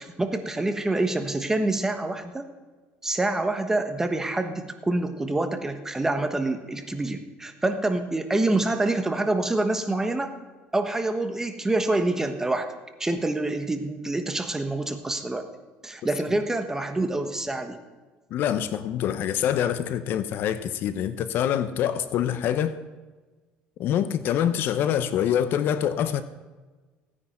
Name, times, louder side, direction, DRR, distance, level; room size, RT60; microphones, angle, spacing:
voice 1, 0.0-2.5 3.0-10.3 10.7-12.7 13.0-15.5 15.8-17.8, right 2 dB, 10° right, 7 dB, 1.3 m, -26 dB
voice 2, 18.3-22.8 23.8-26.2, left 9 dB, 60° left, 12 dB, 0.8 m, -25 dB
16.0 x 9.8 x 4.4 m, 1.3 s
cardioid pair, 115°, 4 cm